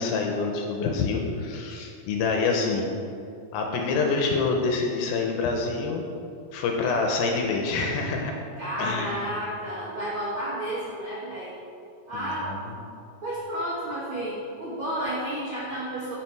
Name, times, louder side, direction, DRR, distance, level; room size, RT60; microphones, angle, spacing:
voice 1, 0.0-2.9 3.5-6.0 6.5-8.3 8.8-9.2 12.1-12.6, left 4 dB, 80° left, 2 dB, 2.4 m, -26 dB
voice 2, 8.6-11.5 12.1-12.5 13.2-16.1, right 1 dB, 65° right, -8 dB, 1.2 m, -31 dB
9.9 x 6.0 x 4.6 m, 2.6 s
omnidirectional pair, 4.7 m